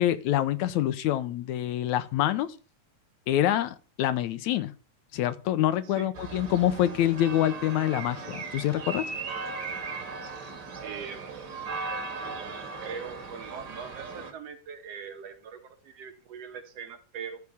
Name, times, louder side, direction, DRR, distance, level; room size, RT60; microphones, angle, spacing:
voice 1, 0.0-2.6 3.3-4.7 5.1-9.1, left 12 dB, 75° left, 2.0 m, -26 dB
sound 1, 6.1-14.3, right 4 dB, 40° right, 1.9 m, -37 dB
voice 2, 10.8-11.7 12.2-12.3 12.8-17.4, right 6 dB, 60° right, 2.1 m, -41 dB
13.0 x 4.9 x 6.9 m
omnidirectional pair, 3.5 m